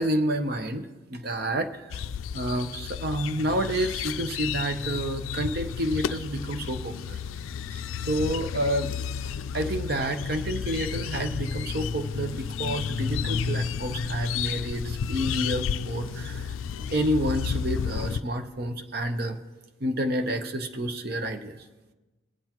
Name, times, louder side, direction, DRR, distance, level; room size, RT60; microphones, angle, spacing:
voice 1, 0.0-2.0 2.3-7.2 7.7-8.9 9.5-19.4 19.8-21.7, right 1 dB, 50° right, 6 dB, 0.7 m, -29 dB
sound 1, 1.9-18.2, left 7 dB, 80° left, 0.3 m, -32 dB
19.5 x 7.8 x 3.0 m, 1.1 s
head